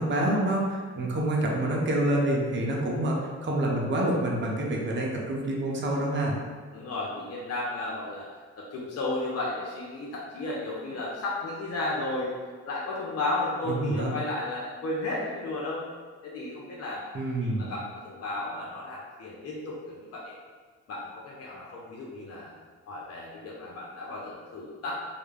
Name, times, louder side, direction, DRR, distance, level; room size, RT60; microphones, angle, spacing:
voice 1, 0.0-3.2 3.4-6.3 13.7-14.1 17.1-17.7, right 1 dB, 40° right, -2 dB, 0.6 m, -27 dB
voice 2, 6.7-8.3 8.6-12.3 12.7-15.8 16.2-17.1 17.4-20.3 20.9-22.5 22.9-25.0, left 2 dB, 50° left, -5 dB, 0.6 m, -33 dB
2.3 x 2.1 x 3.2 m, 1.5 s
supercardioid pair, 55°, 31 cm